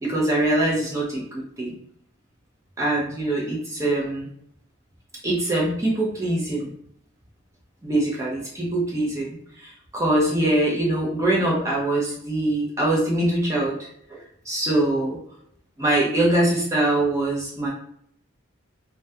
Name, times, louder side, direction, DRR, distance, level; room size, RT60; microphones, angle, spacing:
voice 1, 0.0-1.8 2.8-4.3 5.2-6.7 7.8-9.3 9.6-15.2 15.8-17.7, right 1 dB, 15° right, -4 dB, 0.4 m, -23 dB
2.2 x 2.2 x 2.6 m, 0.67 s
head